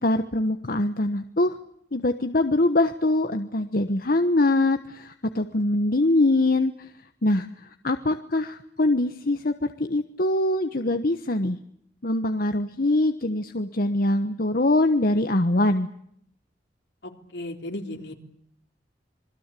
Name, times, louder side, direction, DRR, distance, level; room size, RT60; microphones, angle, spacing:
voice 1, 0.0-1.6 1.9-6.7 7.2-7.5 7.8-11.6 12.0-15.9, left 2 dB, 55° left, 8 dB, 1.2 m, -23 dB
voice 2, 17.0-18.1, left 1 dB, 75° left, 5 dB, 3.6 m, -35 dB
27.5 x 21.5 x 8.4 m, 0.70 s
head